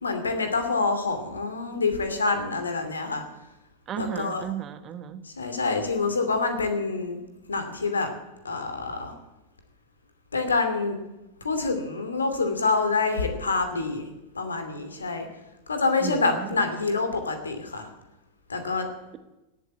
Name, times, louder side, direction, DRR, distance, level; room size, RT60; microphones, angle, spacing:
voice 1, 0.0-3.2 4.0-4.4 5.3-7.2 7.5-8.1 8.4-9.1 10.3-11.0 11.4-14.1 14.3-15.3 15.7-17.9 18.5-18.9, left 3 dB, 75° left, 7 dB, 2.6 m, -26 dB
voice 2, 3.9-5.2 16.0-16.6, right 9 dB, 30° right, 10 dB, 1.3 m, -34 dB
18.0 x 7.9 x 8.9 m, 0.97 s
figure-of-eight pair, 90°, 0 cm